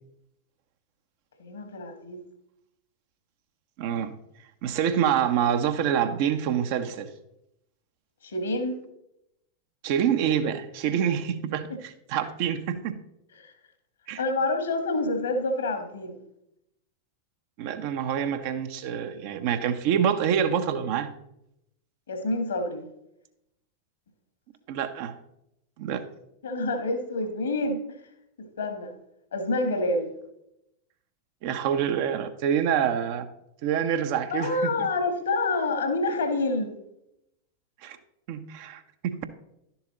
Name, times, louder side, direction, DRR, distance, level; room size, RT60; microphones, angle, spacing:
voice 1, 1.4-2.2 8.2-8.8 10.8-11.0 13.3-13.5 14.2-16.2 22.1-22.9 26.4-28.0 28.4-28.9 29.3-30.1 34.3-36.7, left 2 dB, 65° left, 8 dB, 1.5 m, -28 dB
voice 2, 3.8-4.1 4.6-7.1 9.8-13.0 14.1-14.2 17.6-21.1 24.7-25.2 25.8-26.0 31.4-33.3 33.6-34.9 37.8-38.0 38.3-39.3, right 8 dB, 45° right, 8 dB, 0.8 m, -26 dB
11.5 x 7.1 x 3.8 m, 0.83 s
figure-of-eight pair, 90°, 0 cm